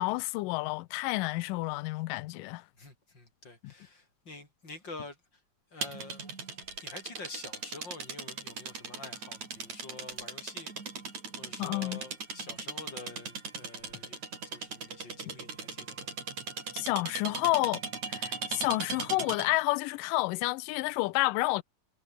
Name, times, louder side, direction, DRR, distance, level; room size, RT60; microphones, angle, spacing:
voice 1, 0.0-2.6 11.6-12.0 16.7-17.8 18.1-21.6, left 21 dB, 90° left, 1.9 m, -30 dB
voice 2, 2.7-5.4 5.7-6.3 6.8-10.7 11.4-16.1, left 3 dB, 25° left, 7.1 m, -47 dB
sound 1, 5.8-19.6, right 5 dB, 45° right, 5.8 m, -39 dB
omnidirectional pair, 4.6 m